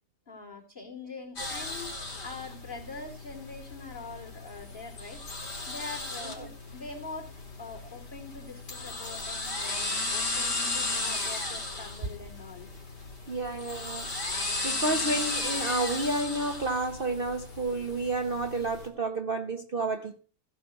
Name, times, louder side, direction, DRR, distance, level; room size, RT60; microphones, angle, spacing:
voice 1, 0.3-1.9 2.2-5.4 5.7-7.3 7.6-12.7, left 4 dB, 30° left, 4.0 m, -43 dB
sound 1, 1.4-18.9, left 2 dB, 90° left, 4.6 m, -35 dB
voice 2, 13.3-14.1 14.6-20.2, right 2 dB, 40° right, 1.1 m, -30 dB
16.0 x 5.7 x 8.1 m
omnidirectional pair, 1.8 m